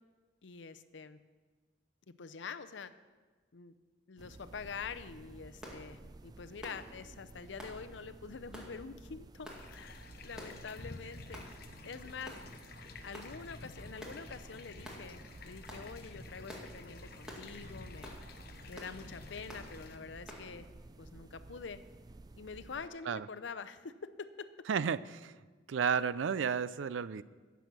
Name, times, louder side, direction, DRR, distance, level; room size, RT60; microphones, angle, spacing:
voice 1, 0.4-1.2 2.2-2.9 3.5-3.7 4.1-11.4 11.8-12.4 13.0-18.1 18.7-20.7 21.0-21.8 22.4-24.5, left 5 dB, 80° left, 11 dB, 0.6 m, -46 dB
sound 1, 4.2-22.9, right 2 dB, 20° right, 0.3 m, -54 dB
sound 2, 5.6-5.8 6.6-6.8 7.6-7.8 8.5-8.7 9.4-9.6 10.4-10.6 11.3-11.5 12.2-12.4 13.1-13.3 14.0-14.2 14.8-15.0 15.7-15.9 16.5-16.7 17.3-17.5 18.0-18.2 18.7-18.9 19.5-19.7 20.3-20.4, equal, 5° right, 2.0 m, -47 dB
sound 3, 9.5-20.0, left 3 dB, 55° left, 1.0 m, -51 dB
voice 2, 24.7-25.4 25.7-27.2, right 6 dB, 85° right, 17 dB, 0.4 m, -32 dB
15.5 x 7.0 x 6.0 m, 1.4 s
head